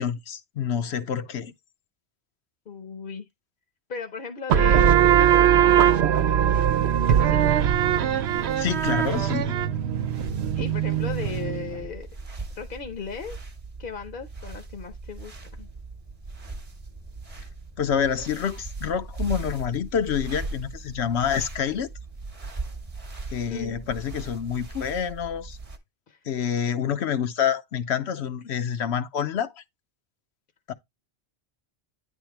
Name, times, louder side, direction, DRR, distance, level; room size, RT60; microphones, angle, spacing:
voice 1, 0.0-1.5 8.6-9.6 17.8-21.9 23.3-25.6 26.3-29.5 30.7-30.8, left 8 dB, 80° left, 1.0 m, -27 dB
voice 2, 2.7-3.3 3.9-6.4 7.1-7.4 10.6-12.1 12.6-13.4 13.8-15.7 23.5-23.9 26.1-26.2, left 6 dB, 55° left, 0.9 m, -37 dB
sound 1, 4.5-11.8, right 9 dB, 75° right, 0.9 m, -21 dB
sound 2, 7.1-25.8, right 3 dB, 35° right, 1.1 m, -39 dB
9.9 x 3.6 x 4.6 m
omnidirectional pair, 1.1 m